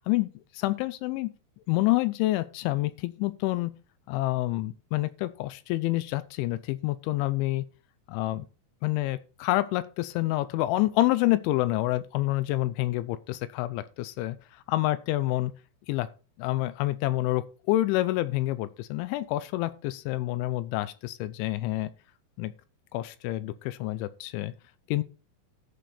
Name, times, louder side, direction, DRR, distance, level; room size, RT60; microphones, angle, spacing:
voice 1, 0.1-1.3 1.7-3.7 4.1-7.7 8.1-8.5 8.8-14.4 14.7-15.5 15.9-16.1 16.4-21.9 22.4-22.5 22.9-24.5 24.9-25.0, left 17 dB, 85° left, 3.0 m, -28 dB
14.0 x 5.2 x 4.2 m
omnidirectional pair, 5.3 m